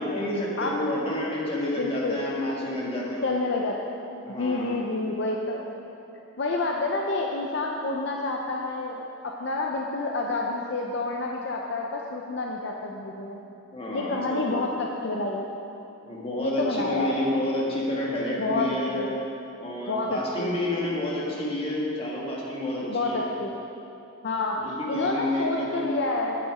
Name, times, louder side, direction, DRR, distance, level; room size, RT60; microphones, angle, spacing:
voice 1, 0.0-3.4 4.2-4.7 13.7-14.6 16.0-19.0 19.6-23.2 24.6-25.9, left 1 dB, 30° left, -4 dB, 1.7 m, -29 dB
voice 2, 1.8-2.2 3.2-3.7 4.3-5.6 6.4-13.4 13.9-15.5 16.4-17.1 18.4-19.1 19.9-20.5 22.9-23.5 24.2-26.4, left 2 dB, 60° left, 0 dB, 0.6 m, -29 dB
9.3 x 8.4 x 5.0 m, 2.9 s
head